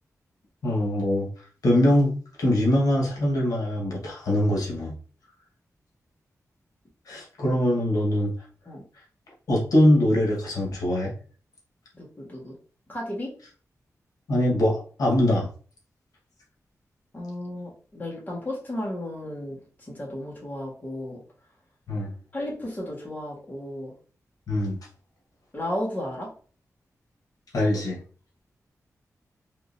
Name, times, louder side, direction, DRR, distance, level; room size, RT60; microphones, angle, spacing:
voice 1, 0.6-1.3 1.6-2.1 2.4-5.0 7.1-8.3 9.5-11.1 14.3-15.5 21.9-22.1 24.5-24.8 27.5-28.0, left 1 dB, 80° left, -2 dB, 1.2 m, -22 dB
voice 2, 11.9-12.6 12.9-13.3 17.1-21.2 22.3-23.9 25.5-26.3, left 1 dB, 30° left, -4 dB, 1.5 m, -34 dB
3.6 x 2.8 x 2.5 m, 0.40 s
wide cardioid pair, 115°, 6 cm